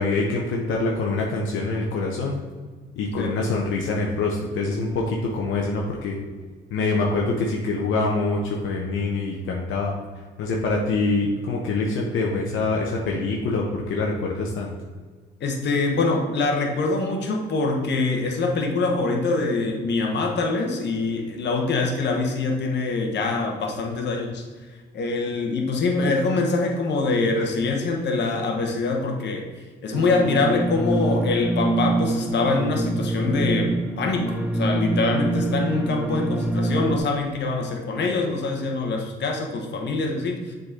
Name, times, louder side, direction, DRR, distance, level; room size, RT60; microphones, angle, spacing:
voice 1, 0.0-2.4 3.0-6.2 6.7-9.9 10.4-14.7, left 3 dB, 80° left, -1 dB, 0.9 m, -25 dB
voice 2, 15.4-24.4 24.9-29.5 29.8-40.5, left 3 dB, 60° left, 2 dB, 1.2 m, -24 dB
sound 1, 29.9-37.0, right 1 dB, 5° right, 0.7 m, -25 dB
7.0 x 4.0 x 3.8 m, 1.5 s
cardioid pair, 90°, 20 cm